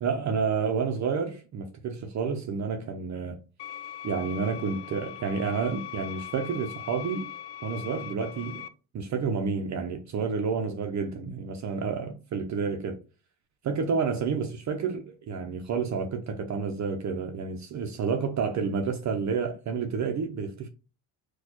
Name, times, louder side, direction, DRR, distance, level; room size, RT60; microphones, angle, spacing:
voice 1, 0.0-3.4 4.0-7.3 7.6-8.7 8.9-13.0 13.6-20.7, right 5 dB, 45° right, 0.5 m, -30 dB
sound 1, 3.6-8.7, left 11 dB, 75° left, 0.5 m, -41 dB
4.2 x 2.3 x 2.8 m
cardioid pair, 115°, 42 cm